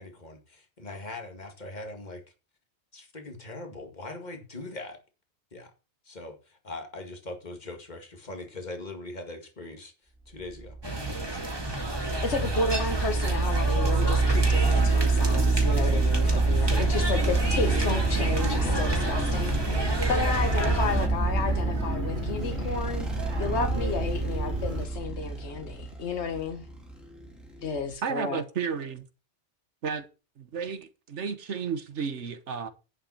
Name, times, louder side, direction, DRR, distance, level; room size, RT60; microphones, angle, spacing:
voice 1, 0.0-2.2 2.9-5.0 5.5-5.7 6.1-6.3 6.6-9.9 10.3-10.8, left 2 dB, 40° left, 2.3 m, -41 dB
sound 1, 10.6-27.9, right 3 dB, ahead, 3.0 m, -27 dB
sound 2, 10.8-21.1, right 2 dB, 20° right, 2.3 m, -32 dB
voice 2, 12.2-19.6 20.1-23.1 23.4-26.6 27.6-28.4, left 4 dB, 75° left, 1.7 m, -32 dB
sound 3, 17.3-24.9, right 1 dB, 45° right, 1.8 m, -36 dB
voice 3, 28.0-29.1 29.8-30.1 30.4-32.7, right 6 dB, 85° right, 1.5 m, -32 dB
11.0 x 5.6 x 7.1 m
omnidirectional pair, 1.2 m